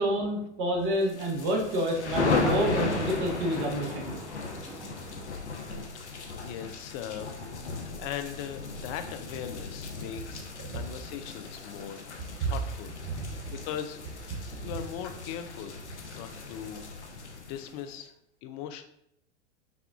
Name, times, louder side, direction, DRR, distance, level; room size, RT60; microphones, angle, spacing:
voice 1, 0.0-4.2 10.7-10.8 12.4-12.5 13.1-13.5 14.6-14.7, right 1 dB, 45° right, 1 dB, 1.2 m, -29 dB
sound 1, 1.0-17.9, left 4 dB, 80° left, 0.8 m, -37 dB
Thunder, 2.0-5.9 6.2-6.3, equal, ahead, 1.1 m, -36 dB
voice 2, 5.9-10.5 10.7-12.9 13.2-14.0 14.6-15.8 16.1-18.1 18.4-18.8, left 9 dB, 30° left, 8 dB, 0.4 m, -40 dB
6.0 x 2.4 x 3.4 m, 0.78 s
figure-of-eight pair, 95°, 34 cm